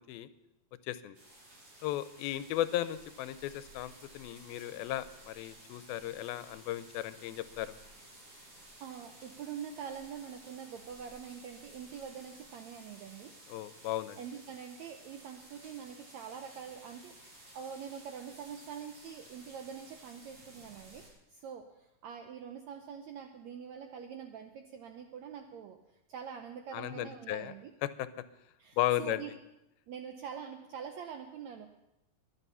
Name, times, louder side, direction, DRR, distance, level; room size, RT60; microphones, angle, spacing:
voice 1, 0.8-1.2 1.8-7.7 13.5-14.2 26.7-27.5 27.8-28.1 28.8-29.2, left 13 dB, 90° left, 14 dB, 2.5 m, -35 dB
sound 1, 1.1-21.1, right 1 dB, 45° right, 5.8 m, -55 dB
voice 2, 8.8-13.3 14.2-21.0 21.3-25.8 26.1-27.7 28.6-29.3 29.9-31.7, right 7 dB, 85° right, 5 dB, 1.6 m, -45 dB
23.5 x 8.9 x 5.6 m, 0.91 s
omnidirectional pair, 4.2 m